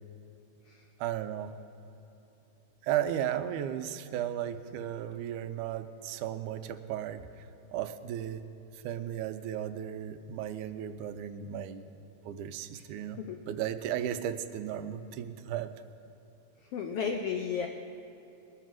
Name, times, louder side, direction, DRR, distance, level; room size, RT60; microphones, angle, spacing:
voice 1, 1.0-1.6 2.8-7.3 7.7-8.4 8.7-11.9 12.3-15.7, right 10 dB, 90° right, 9 dB, 2.1 m, -35 dB
voice 2, 16.7-17.7, left 6 dB, 85° left, 4 dB, 1.3 m, -33 dB
20.5 x 7.3 x 6.1 m, 2.9 s
omnidirectional pair, 3.5 m